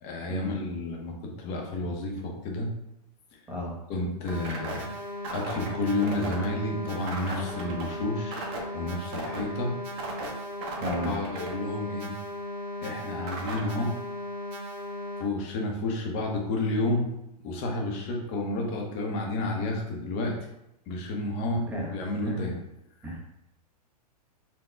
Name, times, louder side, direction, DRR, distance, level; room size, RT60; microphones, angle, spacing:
voice 1, 0.0-2.7 3.9-4.9 5.3-9.7 11.0-12.2 12.8-13.9 15.2-17.0 17.4-20.3 20.9-22.5, left 2 dB, 30° left, 0 dB, 0.8 m, -30 dB
sound 1, 4.3-15.2, equal, 35° right, 0.8 m, -36 dB
voice 2, 10.8-11.2 21.5-22.4 23.0-23.2, equal, 5° right, -3 dB, 0.7 m, -33 dB
4.4 x 2.2 x 4.4 m, 0.83 s
supercardioid pair, 160°, 21 cm